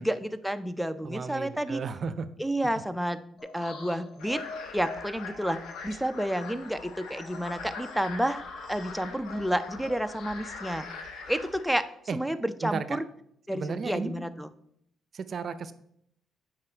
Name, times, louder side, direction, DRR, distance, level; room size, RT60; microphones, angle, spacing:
voice 1, 0.0-1.8 2.4-3.2 3.5-4.4 4.7-8.4 8.7-10.9 11.3-11.9 12.1-13.0 13.5-14.5, equal, ahead, 9 dB, 0.5 m, -30 dB
voice 2, 1.0-2.3 12.1-12.2 12.6-13.0 13.5-14.2 15.1-15.7, right 5 dB, 50° right, 13 dB, 0.6 m, -34 dB
sound 1, 3.4-11.8, left 3 dB, 60° left, 1.2 m, -46 dB
sound 2, 4.2-11.6, left 4 dB, 80° left, 1.1 m, -43 dB
7.3 x 5.0 x 4.5 m, 0.72 s
cardioid pair, 90°, 0 cm